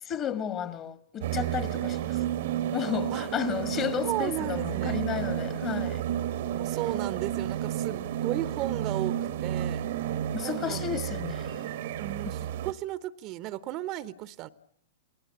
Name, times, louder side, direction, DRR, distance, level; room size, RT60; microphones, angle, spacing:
voice 1, 0.0-2.2 2.7-6.0 6.7-6.8 10.3-11.6, left 9 dB, 30° left, 1.8 m, -33 dB
sound 1, 1.2-12.7, right 11 dB, 55° right, 1.2 m, -31 dB
voice 2, 4.0-5.0 6.5-9.8 10.4-10.8 12.0-14.5, right 14 dB, 35° right, 1.0 m, -35 dB
29.0 x 19.5 x 8.4 m
figure-of-eight pair, 100°, 0 cm